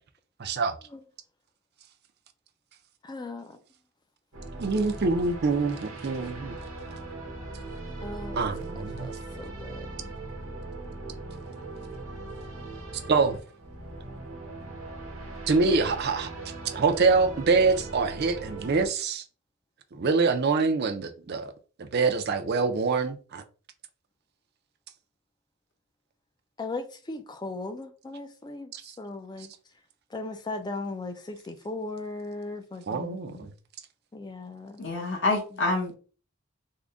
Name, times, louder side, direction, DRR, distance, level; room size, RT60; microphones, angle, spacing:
voice 1, 0.4-0.7 4.6-6.6 8.4-9.1 13.1-13.4 15.5-16.3 16.7-19.2 19.9-21.5 21.8-23.4 28.7-28.9 32.9-33.5, right 4 dB, 50° right, 0.5 m, -25 dB
voice 2, 3.0-3.5 8.0-8.4 9.0-10.1 26.6-28.7 29.0-29.5 30.1-33.5 34.1-34.9 35.5-35.6, left 2 dB, 20° left, 0.4 m, -37 dB
sound 1, 4.3-18.9, right 2 dB, 80° right, 1.1 m, -39 dB
voice 3, 34.8-36.0, left 2 dB, 55° left, 1.0 m, -27 dB
3.7 x 2.1 x 3.5 m
head